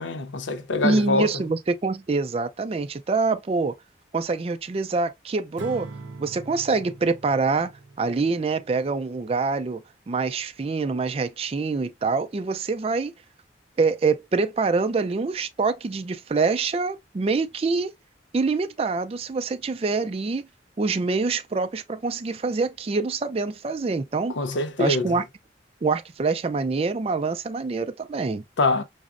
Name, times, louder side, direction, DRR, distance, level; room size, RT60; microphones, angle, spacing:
voice 1, 0.0-1.4 24.3-25.2 28.6-28.8, left 2 dB, 90° left, 0.6 m, -24 dB
voice 2, 0.8-3.7 4.1-5.9 6.2-7.7 8.0-13.1 13.8-17.9 18.3-20.5 20.8-24.3 24.8-25.2 25.8-28.4, right 4 dB, 30° right, 0.3 m, -25 dB
Acoustic guitar / Strum, 5.6-8.9, right 3 dB, 85° right, 0.6 m, -42 dB
5.8 x 2.1 x 2.4 m
head